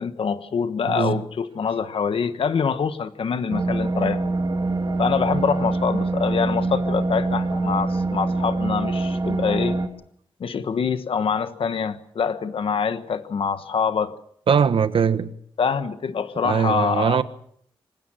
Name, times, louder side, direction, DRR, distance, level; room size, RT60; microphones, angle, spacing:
voice 1, 0.0-4.2 5.0-9.8 10.4-14.1 15.6-17.2, left 6 dB, 70° left, 1.3 m, -25 dB
voice 2, 0.9-1.2 14.5-15.3 16.4-17.2, right 6 dB, 70° right, 1.4 m, -21 dB
sound 1, 3.5-9.9, right 2 dB, 50° right, 3.4 m, -24 dB
26.0 x 16.5 x 7.6 m
wide cardioid pair, 110°, 9 cm